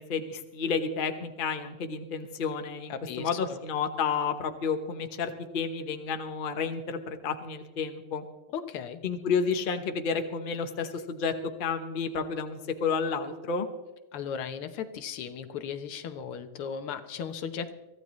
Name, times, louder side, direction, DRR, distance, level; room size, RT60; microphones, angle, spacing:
voice 1, 0.0-8.2 9.0-11.3 11.6-13.7, left 5 dB, 35° left, 7 dB, 0.9 m, -31 dB
voice 2, 2.9-3.6 8.5-9.0 14.1-17.7, left 7 dB, 85° left, 9 dB, 1.9 m, -36 dB
23.0 x 15.0 x 3.1 m, 1.1 s
omnidirectional pair, 2.4 m